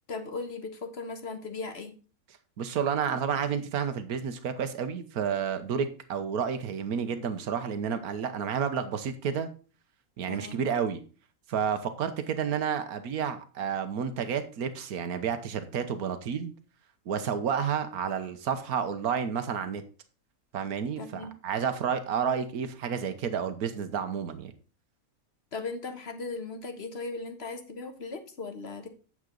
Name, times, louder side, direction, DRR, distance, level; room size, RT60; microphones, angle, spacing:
voice 1, 0.1-2.0 10.3-10.6 21.0-21.3 25.5-28.9, left 3 dB, 45° left, 7 dB, 1.4 m, -37 dB
voice 2, 2.6-9.5 10.2-11.0 11.5-16.5 17.1-19.8 20.5-24.5, right 7 dB, 90° right, 9 dB, 1.5 m, -30 dB
9.4 x 7.3 x 3.9 m, 0.36 s
omnidirectional pair, 1.5 m